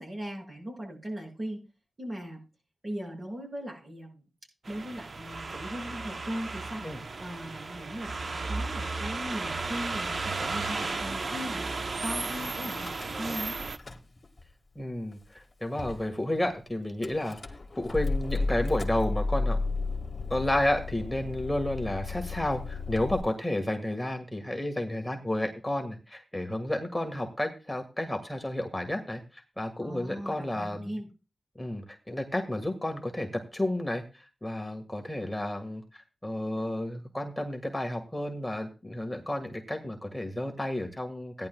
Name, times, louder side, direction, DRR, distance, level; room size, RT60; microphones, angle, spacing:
voice 1, 0.0-1.6 2.0-2.4 2.8-4.2 4.7-6.8 7.2-11.7 12.0-13.6 29.8-31.1, equal, 40° right, 1 dB, 6.3 m, -38 dB
sound 1, 4.6-13.8, right 3 dB, 60° right, 0.9 m, -34 dB
Car / Engine starting / Idling, 12.6-13.4 13.7-14.4 15.1-15.2 15.4-15.5 15.8-16.1 17.0-23.2, left 3 dB, 35° left, 1.7 m, -33 dB
voice 2, 14.8-19.6 20.3-31.0 31.6-41.5, left 1 dB, 10° left, 3 dB, 1.7 m, -31 dB
17.0 x 10.5 x 2.3 m, 0.30 s
wide cardioid pair, 70°, 0 cm